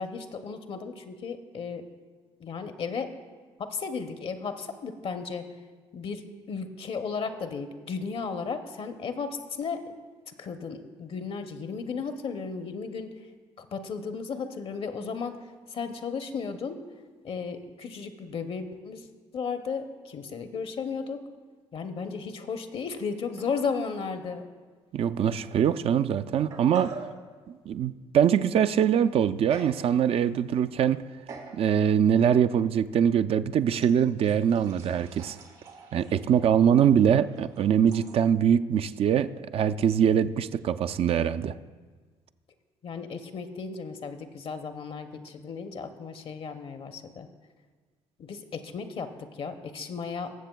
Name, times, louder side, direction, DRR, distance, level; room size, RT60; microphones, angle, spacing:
voice 1, 0.0-1.8 2.4-3.1 3.6-5.5 5.9-6.2 6.5-9.9 10.4-13.1 13.6-15.4 15.7-16.8 17.2-19.1 19.3-21.2 21.7-24.4 42.8-47.3 48.2-50.3, left 5 dB, 50° left, 8 dB, 0.7 m, -34 dB
sound 1, 23.4-24.1 24.4-24.5 25.4-25.5 26.1-27.2 29.5-29.8 30.3-30.6 31.3-31.6 32.2-32.3 33.7-38.2, right 4 dB, 75° right, 1.2 m, -46 dB
voice 2, 24.9-26.9 27.5-31.0 31.5-35.4 35.9-41.6, right 8 dB, 50° right, 11 dB, 0.4 m, -23 dB
20.0 x 7.3 x 2.3 m, 1.4 s
hypercardioid pair, 55°, 13 cm